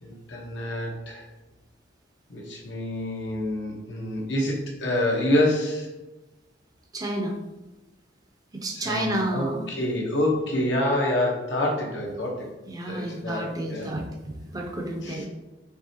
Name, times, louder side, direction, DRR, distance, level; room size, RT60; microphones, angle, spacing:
voice 1, 0.0-1.2 2.3-5.9 8.7-12.5 12.9-13.9 15.0-15.3, left 1 dB, 80° left, -1 dB, 1.0 m, -27 dB
voice 2, 6.9-7.4 8.5-9.6 12.7-15.3, right 1 dB, 20° right, 1 dB, 0.5 m, -30 dB
4.8 x 3.2 x 2.8 m, 1.0 s
head